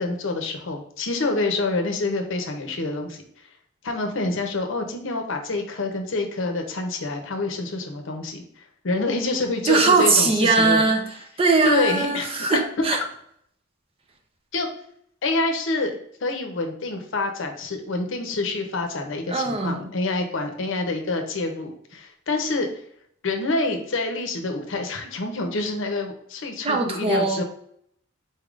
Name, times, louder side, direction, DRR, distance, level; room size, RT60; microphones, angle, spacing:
voice 1, 0.0-3.2 3.8-10.9 11.6-12.3 14.5-14.7 15.2-15.9 16.2-22.7 23.2-27.4, left 2 dB, 65° left, 4 dB, 0.7 m, -27 dB
voice 2, 9.7-11.1 11.4-13.0 19.3-19.9 26.6-27.4, right 3 dB, 30° right, 4 dB, 0.5 m, -20 dB
4.2 x 3.5 x 2.4 m, 0.68 s
head